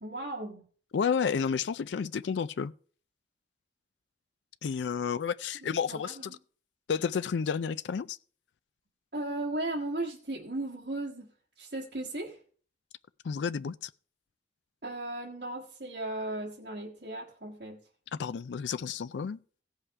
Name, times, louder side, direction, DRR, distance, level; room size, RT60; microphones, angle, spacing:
voice 1, 0.0-0.6 5.6-6.4 9.1-11.3 11.6-12.4 14.8-17.8, right 2 dB, 65° right, 1.6 m, -36 dB
voice 2, 0.9-2.7 4.6-6.4 6.9-8.2 13.2-13.9 18.1-19.4, left 6 dB, 80° left, 0.4 m, -31 dB
16.5 x 5.5 x 4.7 m
head